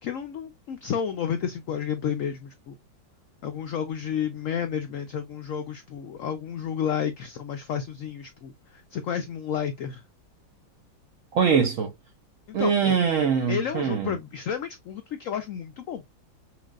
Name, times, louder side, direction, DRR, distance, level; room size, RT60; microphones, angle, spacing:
voice 1, 0.0-2.8 3.4-10.0 12.5-12.9 13.5-16.0, left 8 dB, 85° left, 0.7 m, -31 dB
voice 2, 11.3-11.9 12.5-14.1, right 6 dB, 70° right, 0.7 m, -23 dB
5.8 x 2.6 x 2.3 m
omnidirectional pair, 2.0 m